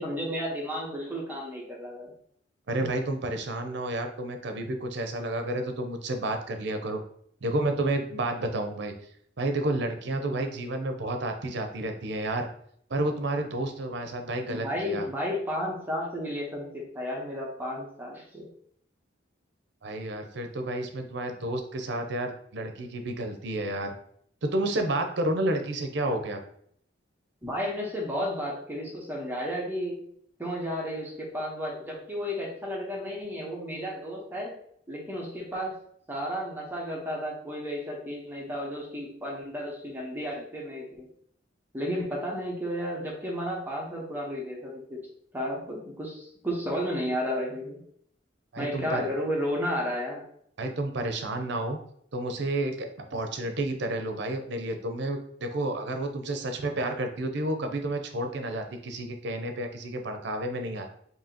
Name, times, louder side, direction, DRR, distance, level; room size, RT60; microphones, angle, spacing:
voice 1, 0.0-2.1 14.5-18.5 27.4-30.0 30.4-34.5 34.9-35.8 36.1-41.1 41.7-45.1 45.3-47.8 48.6-50.2, equal, 10° right, -3 dB, 1.0 m, -33 dB
voice 2, 2.7-7.0 7.4-8.9 9.4-12.5 12.9-15.1 19.8-23.9 24.4-26.4 48.5-49.1 50.6-51.8 52.1-60.9, right 1 dB, 65° right, 6 dB, 0.6 m, -30 dB
4.7 x 2.8 x 2.8 m, 0.66 s
head